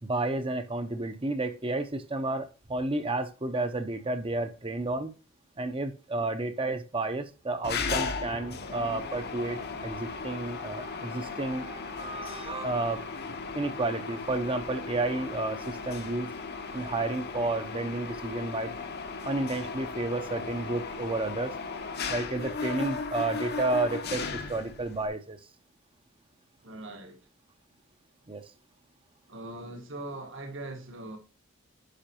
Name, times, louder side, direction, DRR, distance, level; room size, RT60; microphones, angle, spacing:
voice 1, 0.0-5.1 5.6-13.0 13.5-16.3 16.7-18.7 19.2-21.6 22.1-25.4 28.3-28.4, right 2 dB, 25° right, 0.8 m, -31 dB
Mechanisms, 7.6-25.1, left 4 dB, 55° left, 1.0 m, -36 dB
voice 2, 26.6-27.3 29.3-31.2, right 2 dB, 65° right, 1.8 m, -41 dB
10.0 x 5.8 x 2.9 m
head